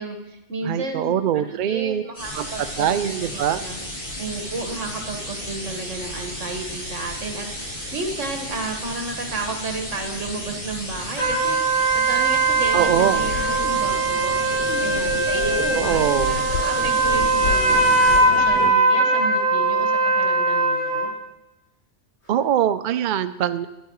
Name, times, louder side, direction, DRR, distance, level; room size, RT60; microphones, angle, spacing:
voice 1, 0.0-3.8 4.2-21.1, right 3 dB, 80° right, 4 dB, 1.9 m, -32 dB
voice 2, 0.6-2.0 2.3-2.5 2.8-3.6 12.7-13.3 15.7-16.5 22.3-23.7, right 10 dB, 60° right, 12 dB, 0.5 m, -22 dB
sound 1, 2.1-18.2, equal, 45° left, 5.7 m, -33 dB
sound 2, 11.2-21.1, right 3 dB, 60° left, 3.5 m, -20 dB
sound 3, 12.5-18.7, left 9 dB, 85° left, 0.9 m, -31 dB
12.5 x 10.0 x 4.7 m, 0.96 s
omnidirectional pair, 1.3 m